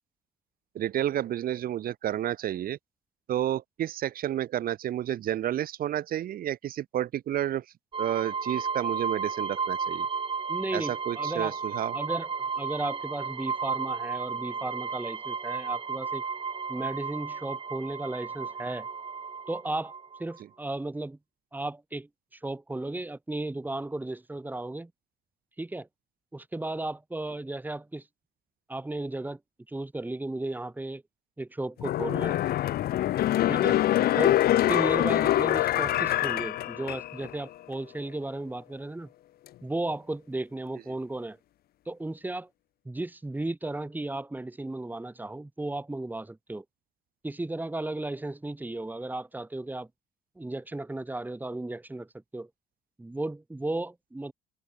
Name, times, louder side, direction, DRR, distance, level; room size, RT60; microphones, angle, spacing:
voice 1, 0.8-2.8 3.3-7.6 8.0-10.1 10.7-11.9, right 11 dB, 60° right, 2.0 m, -30 dB
sound 1, 7.9-20.4, right 5 dB, 30° right, 5.3 m, -33 dB
voice 2, 10.5-11.6 11.9-12.3 12.6-16.2 16.7-18.9 19.5-19.9 20.2-21.2 21.5-24.9 25.6-25.9 26.3-28.1 28.7-29.4 29.7-31.0 31.4-32.4 33.5-33.8 34.1-34.4 34.7-39.1 39.6-41.4 41.9-42.5 42.8-46.6 47.2-49.9 50.4-52.5 53.0-54.3, right 2 dB, 10° right, 5.6 m, -35 dB
sound 2, 31.8-37.4 37.7-37.8, left 13 dB, 65° left, 1.4 m, -25 dB
cardioid pair, 110°, 17 cm